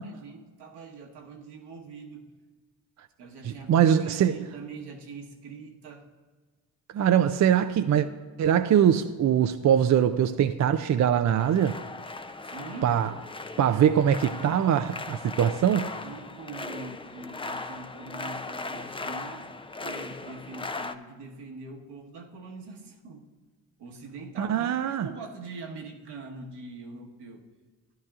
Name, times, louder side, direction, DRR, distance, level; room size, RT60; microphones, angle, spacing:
voice 1, 0.0-2.3 3.2-6.1 12.4-13.3 16.0-23.3 23.8-27.4, right 3 dB, 70° right, 1.4 m, -43 dB
voice 2, 3.7-4.3 6.9-8.1 8.4-11.8 12.8-13.1 13.6-15.9 24.4-25.1, right 9 dB, 45° right, 0.4 m, -22 dB
sound 1, 11.4-21.0, left 3 dB, 15° left, 0.4 m, -38 dB
12.0 x 10.5 x 2.4 m
supercardioid pair, 55°, 43 cm